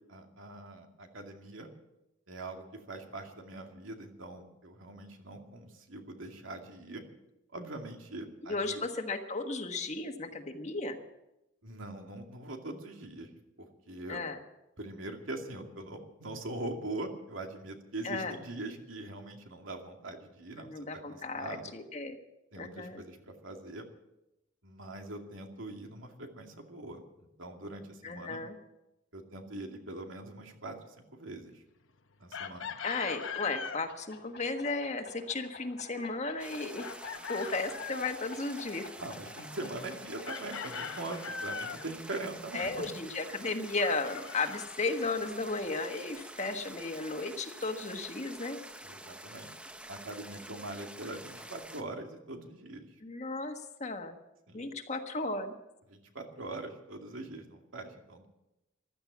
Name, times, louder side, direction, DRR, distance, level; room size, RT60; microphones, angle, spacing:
voice 1, 0.1-1.7 2.3-7.0 7.5-8.8 11.6-13.3 13.6-14.2 14.8-20.7 21.1-21.7 22.5-23.8 24.6-27.0 27.4-28.4 29.1-31.6 32.2-32.8 39.0-42.9 48.8-49.5 49.9-52.9 54.5-54.7 55.9-58.3, right 2 dB, 80° right, 3 dB, 2.4 m, -42 dB
voice 2, 8.4-11.0 14.1-14.4 18.0-18.4 20.6-22.1 22.6-23.0 28.0-28.6 32.8-36.9 37.3-38.9 42.5-48.6 53.0-54.1 54.5-55.5, left 3 dB, 35° left, 6 dB, 1.4 m, -35 dB
Chicken rooster, 32.3-33.8 36.8-38.2 40.3-41.9 43.8-45.3, left 6 dB, 80° left, 1.0 m, -40 dB
sound 1, 32.3-45.7, left 3 dB, 55° left, 2.0 m, -52 dB
sound 2, 36.4-51.8, right 1 dB, 5° right, 0.8 m, -48 dB
15.0 x 12.5 x 7.4 m, 0.91 s
head